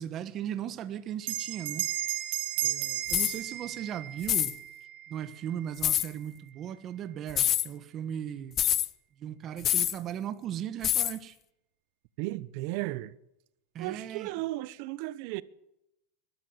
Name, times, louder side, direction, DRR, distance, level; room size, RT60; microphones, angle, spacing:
voice 1, 0.0-1.9 2.6-4.6 5.1-8.6 9.2-11.4 13.7-14.3, right 10 dB, 35° right, 1.4 m, -37 dB
Bell, 1.2-6.1, right 14 dB, 75° right, 3.6 m, -35 dB
sound 1, 3.1-3.4 4.2-4.5 5.8-6.1 7.3-7.7 8.6-8.9 9.6-10.0 10.8-11.2, left 12 dB, 35° left, 0.8 m, -26 dB
voice 2, 12.2-13.1 13.8-15.4, right 18 dB, 60° right, 1.0 m, -35 dB
21.5 x 13.0 x 9.5 m
supercardioid pair, 135°, 0 cm